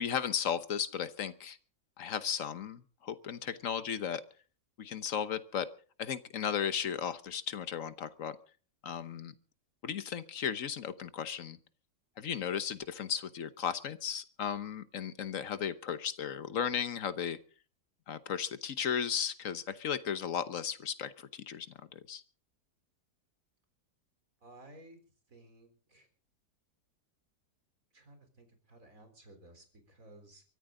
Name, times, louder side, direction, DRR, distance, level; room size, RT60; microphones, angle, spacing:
voice 1, 0.0-1.6 2.0-4.2 4.8-5.7 6.0-8.4 8.8-9.3 9.8-11.6 12.2-17.4 18.1-21.7 21.9-22.2, left 8 dB, 55° left, 12 dB, 1.3 m, -35 dB
voice 2, 24.4-25.0 25.3-26.1 27.9-30.4, right 1 dB, 55° right, 6 dB, 4.2 m, -56 dB
23.5 x 14.0 x 3.8 m, 0.40 s
omnidirectional pair, 1.8 m